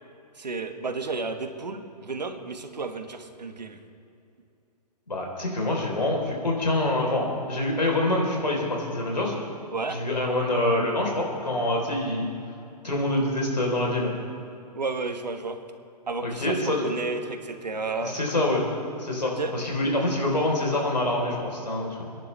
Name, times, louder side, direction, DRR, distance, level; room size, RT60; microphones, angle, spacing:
voice 1, 0.3-3.8 9.7-10.0 14.7-15.6 16.1-18.2 19.4-19.5, right 3 dB, 85° right, 6 dB, 1.4 m, -32 dB
voice 2, 5.1-9.3 9.9-12.3 12.8-14.1 16.2-16.8 18.0-18.6 19.0-22.0, left 1 dB, 90° left, -1 dB, 3.9 m, -26 dB
28.5 x 10.5 x 3.4 m, 2.6 s
figure-of-eight pair, 120°, 21 cm